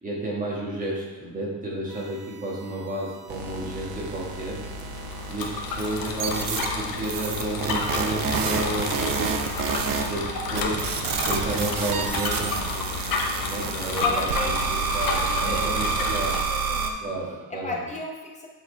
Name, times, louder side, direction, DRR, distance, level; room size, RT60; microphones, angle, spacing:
voice 1, 0.0-4.6 5.3-9.5 10.1-10.9 11.2-12.5 13.5-16.4 17.0-17.8, right 2 dB, 20° right, -5 dB, 1.6 m, -31 dB
sound 1, 1.9-4.5 4.8-5.4 6.2-6.7 7.0-10.2 10.5-16.9, right 6 dB, 55° right, 0.7 m, -29 dB
sound 2, 3.3-16.4, right 1 dB, 75° right, 1.1 m, -38 dB
Bicycle, 4.7-16.4, left 4 dB, 55° left, 1.0 m, -31 dB
voice 2, 11.2-11.6 14.0-17.0 17.5-18.5, left 2 dB, 15° left, -1 dB, 0.9 m, -35 dB
8.2 x 4.3 x 4.5 m, 1.2 s
cardioid pair, 175°, 40 cm